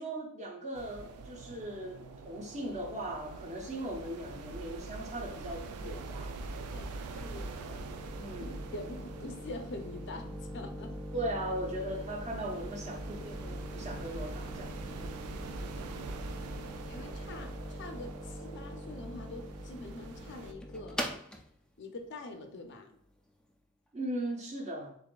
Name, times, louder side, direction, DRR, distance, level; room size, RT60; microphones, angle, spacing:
voice 1, 0.0-6.3 8.2-8.6 11.1-15.1 23.9-25.0, right 1 dB, 30° right, 0 dB, 0.8 m, -39 dB
sound 1, 0.7-20.5, right 3 dB, 85° right, 0.4 m, -44 dB
sound 2, 6.0-23.5, equal, 5° left, 0.3 m, -43 dB
voice 2, 6.7-7.8 8.4-11.0 15.2-15.4 16.9-21.0 21.8-23.0, left 2 dB, 55° left, 5 dB, 0.5 m, -45 dB
6.7 x 2.6 x 2.3 m, 0.66 s
head